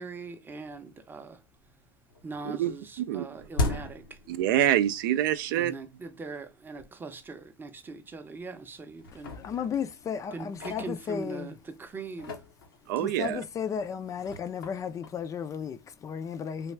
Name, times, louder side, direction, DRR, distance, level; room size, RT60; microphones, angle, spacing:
voice 1, 0.0-1.4 2.2-4.2 5.6-9.4 10.3-12.4, right 3 dB, 15° right, 0.6 m, -41 dB
sound 1, 0.8-0.9 1.2-1.8 2.1-5.0 5.3-5.4 6.2-6.3 6.8-6.9 7.2-7.4 8.1-8.6 9.0-11.6 12.0-16.0, left 2 dB, 85° left, 0.8 m, -38 dB
voice 2, 3.0-3.4 4.3-5.7 12.9-13.4, right 12 dB, 70° right, 0.4 m, -26 dB
voice 3, 9.3-11.5 13.0-16.7, left 7 dB, 30° left, 0.4 m, -34 dB
3.3 x 2.3 x 3.2 m
hypercardioid pair, 95°, 11 cm